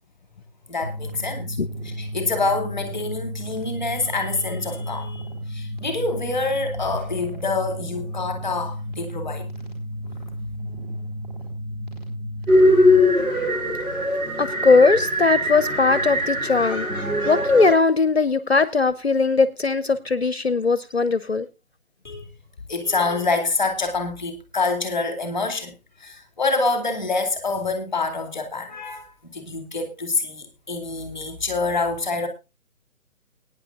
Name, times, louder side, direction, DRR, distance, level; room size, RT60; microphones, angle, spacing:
voice 1, 0.7-1.6 1.8-9.5 10.0-10.1 22.0-22.3 22.7-32.3, left 3 dB, 5° right, 1.7 m, -26 dB
sound 1, 0.8-13.0, equal, 35° right, 4.5 m, -33 dB
sound 2, 12.5-17.7, left 1 dB, 90° right, 5.4 m, -21 dB
voice 2, 14.4-21.5, left 4 dB, 50° left, 0.7 m, -19 dB
21.5 x 9.7 x 2.4 m
hypercardioid pair, 175°, 42 cm